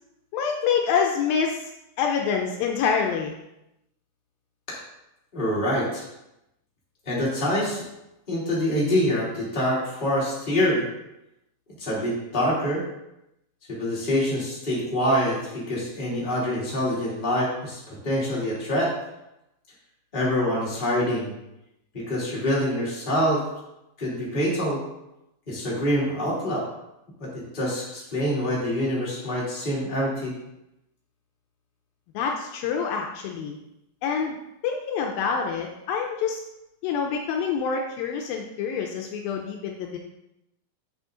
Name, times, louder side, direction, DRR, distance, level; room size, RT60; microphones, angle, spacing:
voice 1, 0.3-1.7 2.0-3.3 32.1-33.6 34.0-34.4 34.6-36.4 36.8-40.0, left 6 dB, 80° left, 2 dB, 2.3 m, -26 dB
voice 2, 5.3-6.0 7.1-7.8 8.3-10.8 11.8-12.9 13.7-18.9 20.1-21.3 21.9-23.4 24.0-24.8 25.5-26.6 27.2-30.3, equal, 15° left, -6 dB, 2.2 m, -25 dB
7.7 x 6.4 x 3.8 m, 0.88 s
omnidirectional pair, 4.4 m